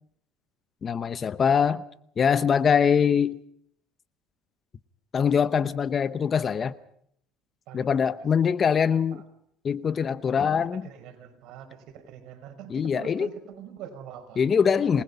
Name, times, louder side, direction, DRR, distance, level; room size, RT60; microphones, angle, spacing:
voice 1, 0.8-1.8 2.2-3.4 5.1-6.8 7.7-9.2 9.6-10.8 12.7-13.3 14.4-15.0, left 7 dB, 30° left, 0.8 m, -23 dB
voice 2, 7.7-8.1 8.5-8.6 9.1-9.2 10.7-15.0, right 8 dB, 65° right, 5.3 m, -44 dB
28.0 x 20.5 x 5.6 m
supercardioid pair, 115°, 0 cm